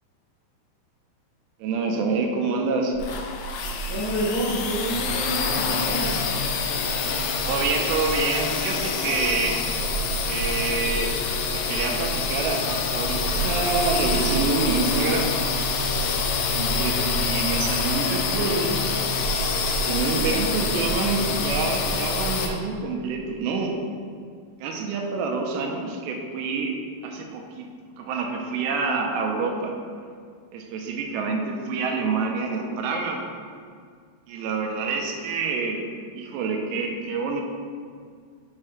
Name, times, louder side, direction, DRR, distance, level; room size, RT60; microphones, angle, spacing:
voice 1, 1.6-3.0 7.4-9.6 10.3-11.1 11.5-15.3 16.5-18.8 19.9-23.7 24.6-26.7 27.0-27.7 28.0-29.8 30.5-33.2 34.3-35.8 36.1-37.4, right 4 dB, 85° right, 2 dB, 2.9 m, -27 dB
sound 1, 2.9-22.5, left 3 dB, 90° left, 2.9 m, -26 dB
voice 2, 3.9-6.1, right 1 dB, 65° left, -10 dB, 1.5 m, -28 dB
7.5 x 7.3 x 3.2 m, 2.1 s
omnidirectional pair, 5.0 m